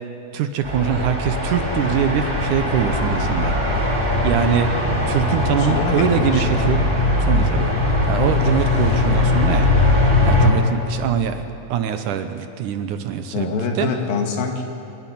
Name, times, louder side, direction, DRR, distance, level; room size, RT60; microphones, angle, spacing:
voice 1, 0.3-3.6 4.2-4.7 5.1-6.8 7.2-7.7 8.1-9.9 10.2-11.4 11.7-13.9, right 9 dB, 70° right, 9 dB, 2.1 m, -23 dB
sound 1, 0.6-10.5, left 2 dB, 5° right, 4.2 m, -20 dB
voice 2, 5.3-6.8 9.0-9.3 13.3-14.6, left 4 dB, 85° left, 3 dB, 3.6 m, -26 dB
26.5 x 10.5 x 9.9 m, 2.9 s
omnidirectional pair, 4.1 m